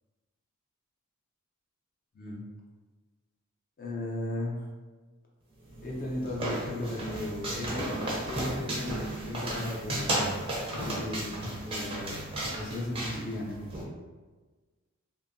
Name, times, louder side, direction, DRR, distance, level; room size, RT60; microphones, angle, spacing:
voice 1, 3.8-4.7 5.8-10.4 10.7-11.3 11.6-13.7, left 1 dB, 40° left, -2 dB, 0.5 m, -36 dB
sound 1, 5.7-13.8, right 1 dB, 25° right, 0.5 m, -34 dB
2.7 x 2.2 x 2.5 m, 1.3 s
head